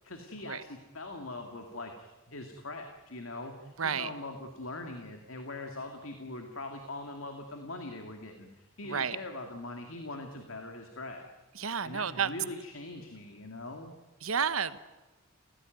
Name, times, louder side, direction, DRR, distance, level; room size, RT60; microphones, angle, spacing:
voice 1, 0.0-11.3 11.8-13.9, left 2 dB, 70° left, 4 dB, 2.5 m, -42 dB
voice 2, 3.8-4.1 8.8-9.2 11.5-12.3 14.2-14.8, right 6 dB, 80° right, 14 dB, 1.1 m, -31 dB
29.5 x 16.5 x 9.4 m, 1.1 s
head